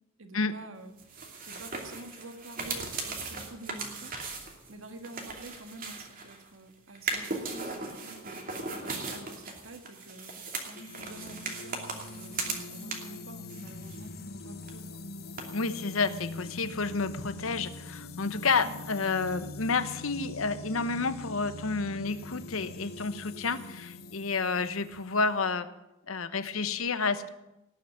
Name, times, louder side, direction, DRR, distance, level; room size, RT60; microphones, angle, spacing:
voice 1, 0.2-0.9 1.5-4.1 4.7-15.0 18.6-18.8, right 2 dB, 70° right, 6 dB, 1.7 m, -48 dB
sound 1, 1.0-6.5 6.9-13.2 13.5-14.4 14.6-14.7 15.4-15.5, right 3 dB, 40° right, 2.6 m, -38 dB
sound 2, 10.8-25.5, left 2 dB, 50° left, 0.9 m, -43 dB
voice 2, 15.5-25.7 26.1-27.3, left 4 dB, 80° left, 12 dB, 1.0 m, -30 dB
18.5 x 6.8 x 9.6 m, 0.95 s
head